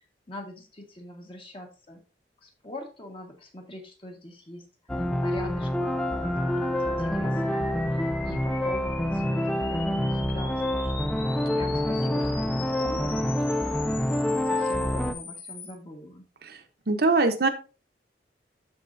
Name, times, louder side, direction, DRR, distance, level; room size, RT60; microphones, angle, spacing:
voice 1, 0.3-2.0 2.4-4.7 4.9-11.1 11.5-14.2 14.5-16.2, left 1 dB, 30° left, 2 dB, 1.5 m, -43 dB
sound 1, 4.9-15.1, left 1 dB, 5° left, 0.4 m, -27 dB
sound 2, 5.8-15.7, left 4 dB, 60° left, 1.9 m, -42 dB
voice 2, 16.9-17.5, right 3 dB, 60° right, 6 dB, 0.9 m, -21 dB
12.5 x 4.3 x 2.6 m, 0.33 s
head